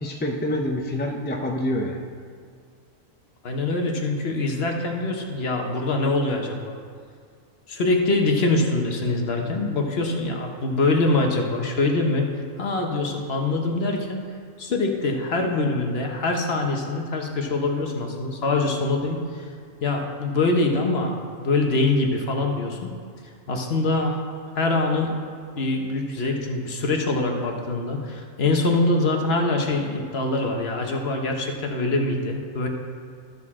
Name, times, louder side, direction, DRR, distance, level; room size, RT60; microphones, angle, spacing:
voice 1, 0.0-2.0, left 1 dB, 15° left, 1 dB, 0.4 m, -26 dB
voice 2, 3.4-6.8 7.7-12.3 12.6-14.2 14.6-19.5 19.8-22.9 23.5-24.2 24.5-25.1 25.6-32.7, left 2 dB, 55° left, 2 dB, 1.1 m, -24 dB
12.5 x 6.5 x 3.6 m, 2.1 s
omnidirectional pair, 1.4 m